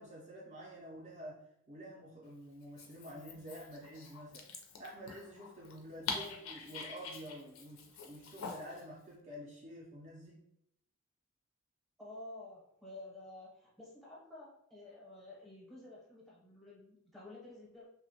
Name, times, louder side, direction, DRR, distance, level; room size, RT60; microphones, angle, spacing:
voice 1, 0.0-4.5 4.8-10.4, equal, 35° right, -4 dB, 0.4 m, -49 dB
Dog, 2.6-8.8, left 5 dB, 65° left, 0.4 m, -45 dB
voice 2, 12.0-17.9, left 2 dB, ahead, -4 dB, 0.7 m, -51 dB
2.8 x 2.1 x 2.7 m, 0.74 s
head